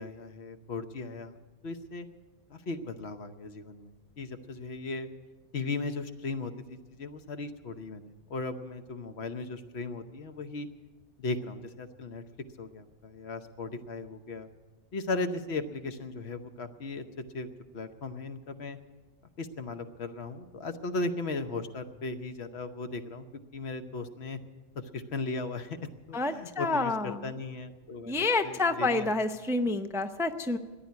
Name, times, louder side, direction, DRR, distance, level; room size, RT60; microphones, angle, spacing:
voice 1, 0.0-1.4 1.6-2.1 2.5-5.1 5.5-10.7 11.2-12.2 12.6-14.5 14.9-17.0 17.3-17.5 17.7-18.8 19.4-23.2 23.5-24.4 24.8-29.1, left 3 dB, 70° left, 8 dB, 1.2 m, -37 dB
voice 2, 26.1-27.2 28.1-30.6, left 3 dB, 5° right, 8 dB, 0.4 m, -28 dB
14.0 x 10.0 x 9.4 m, 1.2 s
omnidirectional pair, 1.2 m